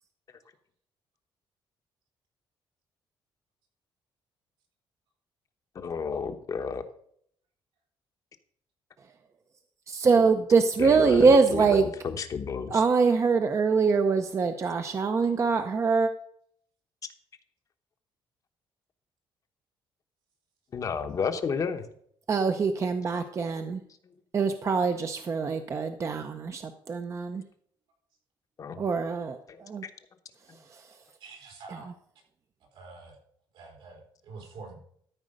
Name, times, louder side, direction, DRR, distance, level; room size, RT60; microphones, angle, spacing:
voice 1, 5.7-6.8 10.8-12.8 20.7-21.9 23.6-23.8 24.0-24.1 28.6-28.8 29.5-29.9, left 6 dB, 40° left, 7 dB, 0.9 m, -32 dB
voice 2, 9.9-11.8 12.7-16.1 22.3-23.8 24.3-27.4 28.8-29.8 30.7-30.9, right 4 dB, 35° right, 7 dB, 0.7 m, -24 dB
voice 3, 31.2-31.9 32.7-33.2 33.5-34.8, right 4 dB, 80° right, 1 dB, 4.0 m, -46 dB
13.5 x 5.0 x 6.4 m, 0.65 s
cardioid pair, 150°, 9 cm